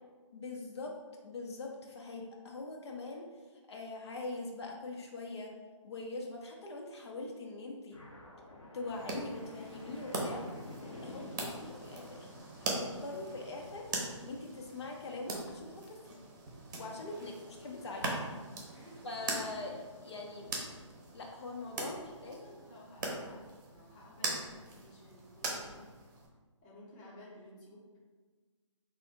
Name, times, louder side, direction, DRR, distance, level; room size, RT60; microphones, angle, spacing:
voice 1, 0.3-0.9 1.2-3.3 3.7-5.5 5.8-8.0 8.7-10.5 11.0-12.2 12.6-13.9 14.2-16.2 16.7-17.3 17.6-18.2 19.0-20.5 21.1-22.4, left 3 dB, 60° left, 0 dB, 0.6 m, -42 dB
sound 1, 7.9-14.3, left 2 dB, 85° left, 0.9 m, -50 dB
sound 2, 8.9-26.3, right 2 dB, 35° right, 0.7 m, -41 dB
voice 2, 18.7-19.1 19.5-19.8 22.2-26.1 26.6-28.0, left 1 dB, 20° left, -5 dB, 0.7 m, -55 dB
3.2 x 2.5 x 3.9 m, 1.4 s
hypercardioid pair, 150°, 16 cm